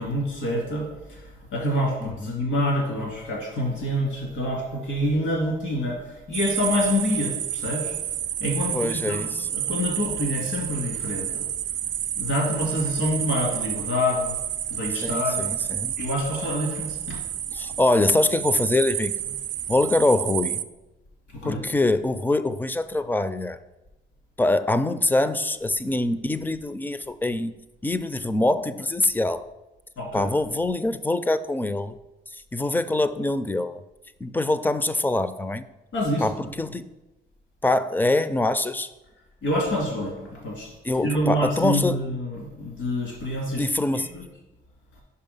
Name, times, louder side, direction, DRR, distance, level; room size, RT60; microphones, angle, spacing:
voice 1, 0.0-8.0 8.4-11.5 12.1-14.3 14.7-15.5 16.0-17.2 21.4-21.6 30.0-30.3 35.9-36.3 39.4-43.6 43.9-44.2, left 1 dB, 80° left, -1 dB, 2.4 m, -27 dB
voice 2, 2.0-2.4 8.7-9.5 15.0-15.9 17.5-19.1 19.7-20.6 21.4-23.6 24.4-27.5 27.8-29.4 30.1-32.0 32.3-33.8 34.2-35.7 36.2-36.8 37.6-38.9 40.8-42.0 43.6-44.1, left 2 dB, 10° left, 13 dB, 0.4 m, -24 dB
sound 1, 6.3-20.6, right 10 dB, 65° right, 0.4 m, -30 dB
5.6 x 5.3 x 5.3 m, 1.0 s
cardioid pair, 90°, 20 cm